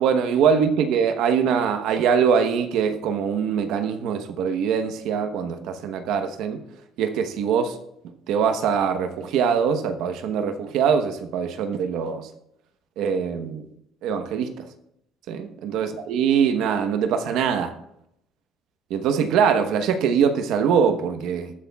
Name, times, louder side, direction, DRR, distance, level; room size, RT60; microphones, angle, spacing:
voice 1, 0.0-6.6 7.0-7.8 8.3-12.3 13.0-13.6 14.0-14.7 15.3-17.7 18.9-21.5, right 7 dB, 70° right, 1.0 m, -23 dB
22.0 x 10.0 x 2.3 m
cardioid pair, 125°, 0 cm